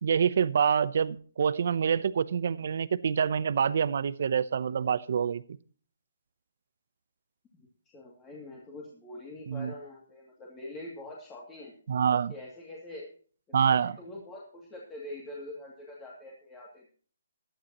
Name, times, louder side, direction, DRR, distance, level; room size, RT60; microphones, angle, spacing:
voice 1, 0.0-5.4 9.5-9.7 11.9-12.3 13.5-14.0, right 7 dB, 55° right, 0.8 m, -26 dB
voice 2, 7.5-11.7 12.3-13.1 13.5-16.9, left 1 dB, 15° left, 2.6 m, -44 dB
16.0 x 11.5 x 3.0 m
hypercardioid pair, 155°, 0 cm